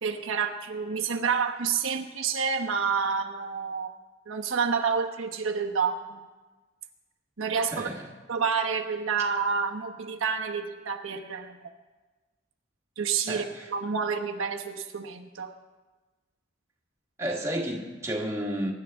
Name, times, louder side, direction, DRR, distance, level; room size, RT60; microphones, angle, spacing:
voice 1, 0.0-3.9 4.3-6.3 7.4-7.9 8.3-11.6 13.0-15.5, right 6 dB, 75° right, 2 dB, 1.0 m, -29 dB
voice 2, 7.7-8.0 13.3-13.7 17.2-18.7, equal, 15° right, -2 dB, 1.5 m, -31 dB
23.5 x 11.0 x 3.5 m, 1.3 s
head